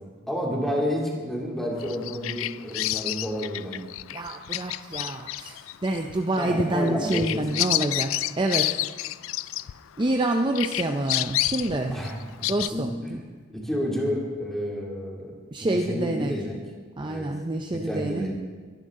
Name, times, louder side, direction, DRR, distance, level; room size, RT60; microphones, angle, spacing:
voice 1, 0.0-3.8 6.4-7.4 11.9-13.2 13.5-15.3 15.6-16.6 17.0-17.3 17.7-18.3, equal, ahead, -3 dB, 2.7 m, -30 dB
Bird vocalization bird call bird song, 1.8-10.2 10.5-12.7, left 15 dB, 75° left, 0.3 m, -30 dB
voice 2, 4.1-8.8 10.0-12.0 12.5-13.2 15.5-16.4 17.0-18.3, right 2 dB, 25° right, 4 dB, 0.5 m, -27 dB
23.0 x 10.5 x 3.8 m, 1.5 s
head